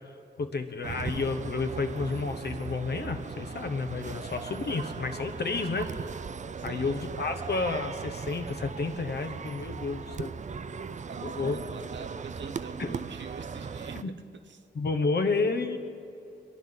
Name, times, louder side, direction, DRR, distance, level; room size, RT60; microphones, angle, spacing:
voice 1, 0.4-5.9 6.6-10.3 11.2-11.6 12.8-12.9 14.0-14.1 14.7-15.8, left 4 dB, 65° left, 7 dB, 1.1 m, -31 dB
sound 1, 0.8-14.0, right 5 dB, 40° right, 0.4 m, -38 dB
voice 2, 6.6-7.1 11.1-14.2 14.4-14.7, right 6 dB, 90° right, 9 dB, 0.9 m, -45 dB
24.5 x 11.5 x 3.9 m, 2.7 s
wide cardioid pair, 135°, 18 cm